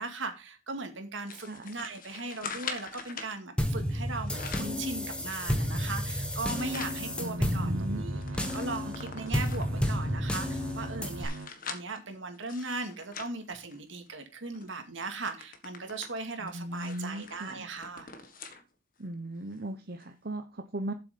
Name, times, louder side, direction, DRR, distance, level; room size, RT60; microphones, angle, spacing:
voice 1, 0.0-8.2 8.5-11.3 11.7-18.1, right 3 dB, 65° right, 2.1 m, -38 dB
sound 1, 1.3-3.3 4.1-4.8 5.3-7.0 7.4-7.5 7.8-9.8 10.4-14.1 14.5-14.7 15.0-18.6 19.0-19.1 20.0-20.1, left 5 dB, 45° left, 1.6 m, -44 dB
sound 2, 3.6-11.3, equal, 5° left, 1.4 m, -31 dB
sound 3, 6.5-11.5, right 2 dB, 80° right, 1.0 m, -43 dB
voice 2, 7.2-8.0 16.4-17.7 19.0-20.9, right 1 dB, 50° right, 0.9 m, -37 dB
8.0 x 6.9 x 5.2 m
head